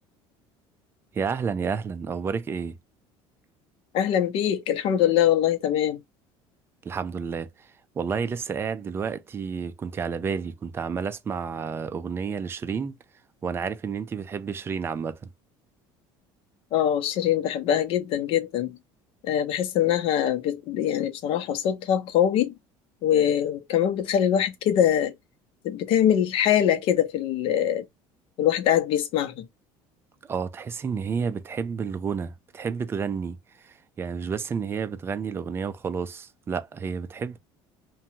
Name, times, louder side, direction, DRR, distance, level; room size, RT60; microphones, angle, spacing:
voice 1, 1.1-2.8 6.8-7.7 8.0-13.0 13.4-15.3 30.3-37.4, right 6 dB, 20° right, 0.4 m, -30 dB
voice 2, 3.9-6.0 16.7-18.8 19.2-22.5 23.0-25.1 25.6-27.8 28.4-29.5, left 10 dB, 60° left, 0.6 m, -23 dB
2.7 x 2.2 x 2.7 m
cardioid pair, 140°, 11 cm